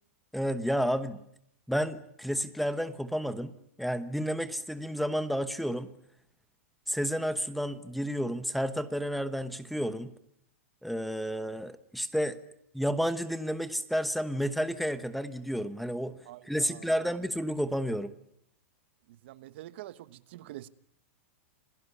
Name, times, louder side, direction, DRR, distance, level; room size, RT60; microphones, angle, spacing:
voice 1, 0.3-1.2 1.7-3.5 3.8-5.9 6.9-10.1 10.8-12.4 12.7-16.2 16.5-18.1, equal, ahead, 1.0 m, -31 dB
voice 2, 16.2-17.1 19.1-20.7, right 15 dB, 55° right, 1.1 m, -46 dB
27.0 x 17.5 x 9.8 m
supercardioid pair, 160°, 7 cm